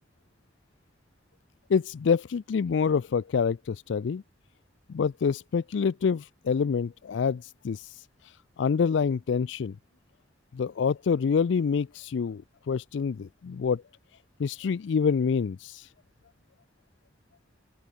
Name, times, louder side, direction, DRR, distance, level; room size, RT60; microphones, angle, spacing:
voice 1, 1.7-4.2 4.9-8.0 8.6-9.8 10.5-13.8 14.4-15.9, left 6 dB, 70° left, 0.4 m, -27 dB
open air
head